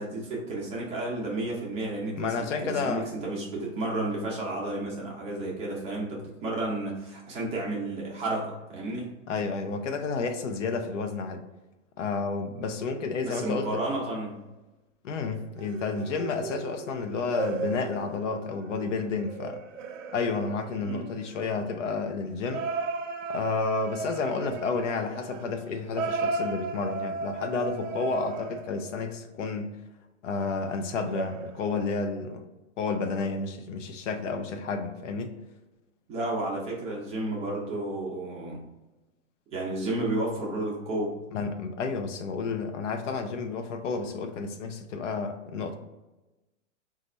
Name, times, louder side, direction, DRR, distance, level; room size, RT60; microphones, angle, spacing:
voice 1, 0.0-9.1 13.2-14.4 20.8-21.1 36.1-38.6 39.5-41.2, right 2 dB, 15° right, -4 dB, 0.7 m, -32 dB
voice 2, 2.1-3.1 9.3-11.4 12.0-13.8 15.0-19.6 20.1-22.7 23.3-29.8 30.2-32.4 32.8-35.4 41.3-45.8, left 4 dB, 70° left, 6 dB, 0.7 m, -31 dB
sound 1, 13.9-14.4 15.6-21.6 22.5-29.1 30.4-31.7, right 4 dB, 75° right, 0.6 m, -36 dB
4.0 x 2.5 x 4.2 m, 1.1 s
hypercardioid pair, 155°, 38 cm